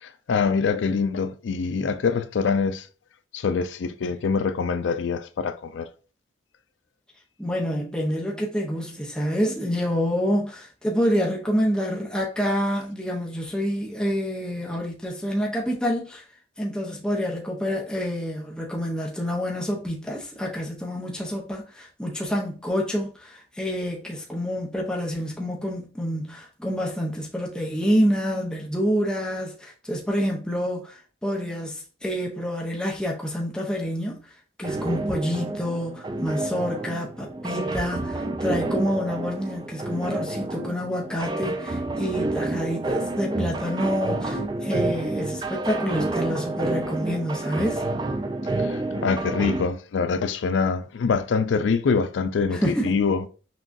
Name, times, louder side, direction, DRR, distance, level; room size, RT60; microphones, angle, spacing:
voice 1, 0.0-2.9 3.3-5.9 48.6-53.2, left 5 dB, 80° left, 0.4 m, -24 dB
voice 2, 7.4-16.2 16.6-34.2 34.6-47.8 52.5-53.0, equal, 5° left, 0.7 m, -27 dB
sound 1, 34.6-49.6, right 2 dB, 25° right, 0.4 m, -29 dB
6.0 x 2.4 x 2.5 m
head